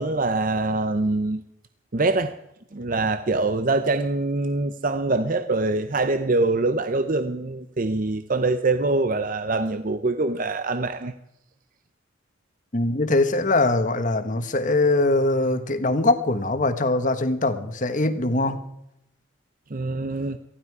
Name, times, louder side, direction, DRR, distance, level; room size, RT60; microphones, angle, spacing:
voice 1, 0.0-1.4 1.9-2.3 2.7-11.1 19.7-20.4, right 3 dB, 40° right, 0.6 m, -24 dB
voice 2, 12.7-18.6, left 2 dB, 40° left, 1.3 m, -22 dB
19.0 x 14.5 x 4.8 m
head